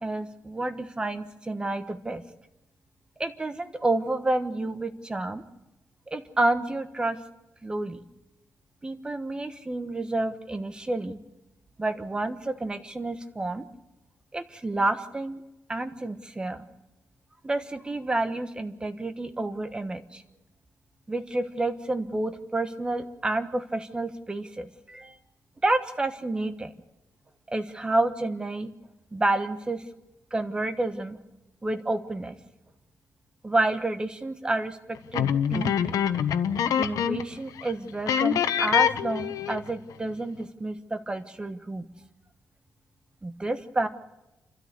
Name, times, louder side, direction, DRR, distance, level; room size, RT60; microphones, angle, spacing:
voice 1, 0.0-2.2 3.2-5.4 6.1-7.2 7.6-8.0 8.8-11.2 11.8-13.7 14.3-15.4 15.7-16.7 17.4-20.2 21.1-25.2 25.6-26.7 27.5-28.7 29.1-29.8 30.3-31.2 31.6-32.4 33.4-36.0 36.8-41.9 43.2-43.9, right 2 dB, 15° right, 9 dB, 1.2 m, -29 dB
sound 1, 35.1-37.3 37.6-37.7 38.1-39.7, left 9 dB, 90° left, 1.0 m, -25 dB
29.0 x 13.0 x 6.8 m, 0.97 s
wide cardioid pair, 160°, 6 cm